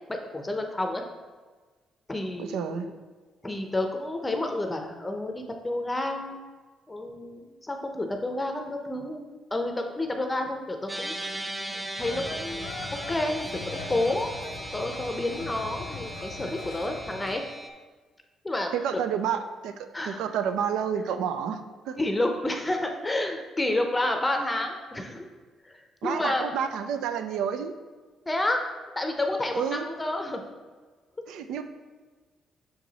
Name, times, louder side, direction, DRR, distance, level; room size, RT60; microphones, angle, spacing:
voice 1, 0.1-1.0 2.1-2.9 3.4-6.4 6.9-11.1 11.7-12.7 12.9-14.3 14.7-17.4 18.4-18.7 19.9-20.2 22.0-25.2 25.6-26.5 28.3-28.6 29.0-30.4, left 1 dB, 15° left, 4 dB, 0.6 m, -30 dB
voice 2, 2.4-2.9 18.7-22.0 26.0-27.7 29.5-29.9 31.3-31.6, right 8 dB, 85° right, 9 dB, 0.4 m, -30 dB
sound 1, 10.9-17.7, right 1 dB, 20° right, 0.7 m, -38 dB
sound 2, 12.0-17.3, left 4 dB, 90° left, 0.5 m, -40 dB
6.3 x 4.7 x 4.0 m, 1.4 s
cardioid pair, 90°, 0 cm